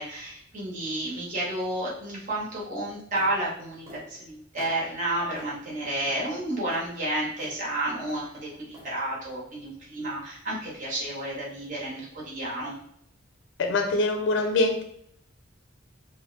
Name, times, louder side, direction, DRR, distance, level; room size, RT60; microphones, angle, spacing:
voice 1, 0.0-12.7, right 1 dB, 40° right, -6 dB, 1.1 m, -31 dB
sound 1, 3.2-3.3 3.9-4.1 4.6-4.8 5.3-5.5 6.0-6.2 6.7-6.9 7.4-7.6 8.1-8.3 8.7-8.9, right 1 dB, 15° right, 1.0 m, -46 dB
voice 2, 13.6-14.8, left 2 dB, 65° left, 4 dB, 0.4 m, -24 dB
3.1 x 2.2 x 3.2 m, 0.70 s
head